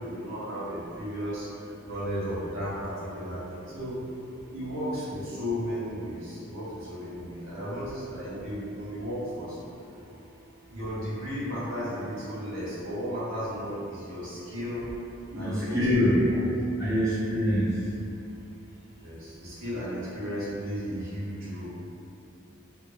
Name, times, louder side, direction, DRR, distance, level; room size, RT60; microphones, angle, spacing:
voice 1, 0.0-3.9 4.5-9.6 10.7-14.9 15.4-15.8 16.1-16.4 19.0-21.7, equal, 70° right, -10 dB, 0.9 m, -34 dB
voice 2, 7.2-7.6 9.8-9.9 15.3-16.2 16.8-17.8, left 1 dB, 15° right, -12 dB, 0.4 m, -26 dB
2.9 x 2.1 x 2.2 m, 2.6 s
head